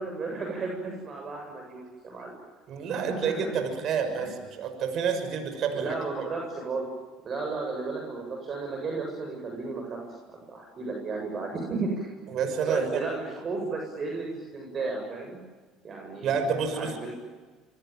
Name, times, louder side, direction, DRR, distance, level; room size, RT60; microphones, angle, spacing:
voice 1, 0.0-2.3 2.9-3.3 4.2-4.3 5.7-6.9 7.2-10.0 10.3-12.1 12.6-15.4 15.8-16.3 16.7-17.2, right 3 dB, 40° right, 1 dB, 8.0 m, -34 dB
voice 2, 2.7-6.0 12.3-13.0 16.2-17.0, right 6 dB, 55° right, 8 dB, 6.3 m, -29 dB
27.5 x 23.5 x 9.2 m, 1.4 s
hypercardioid pair, 75°, 0 cm